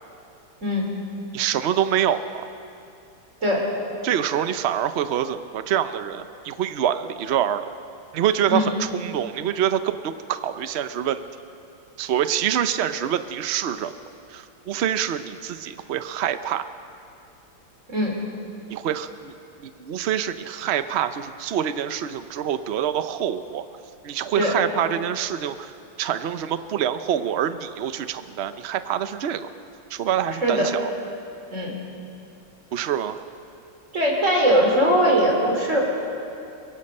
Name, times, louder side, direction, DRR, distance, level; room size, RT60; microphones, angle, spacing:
voice 1, 0.6-0.9 3.4-3.7 8.5-8.7 17.9-18.2 24.3-24.5 30.4-30.7 31.5-31.7 33.9-35.8, equal, 40° right, -1 dB, 4.2 m, -20 dB
voice 2, 1.3-2.5 4.0-7.7 8.1-11.2 12.0-13.9 14.3-16.6 18.7-19.3 19.6-23.6 24.0-25.7 26.0-29.5 29.9-30.8 32.7-33.2, right 10 dB, 80° right, 11 dB, 0.5 m, -26 dB
24.0 x 22.5 x 5.4 m, 2.6 s
omnidirectional pair, 2.0 m